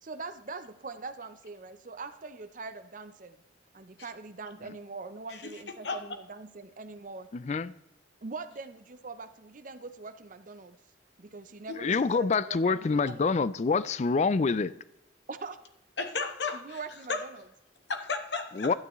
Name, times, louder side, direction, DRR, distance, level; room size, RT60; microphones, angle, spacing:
voice 1, 0.0-3.4 3.7-7.3 8.2-10.8 11.2-13.2 15.3-15.6 16.5-17.4, right 3 dB, 45° right, 0.6 m, -42 dB
voice 2, 5.3-6.0 11.7-12.0 16.0-16.8 17.1-17.2 17.9-18.7, left 4 dB, 70° left, 1.2 m, -34 dB
voice 3, 7.3-7.7 11.8-14.7 18.6-18.7, left 4 dB, 40° left, 0.4 m, -26 dB
12.0 x 9.3 x 3.1 m
head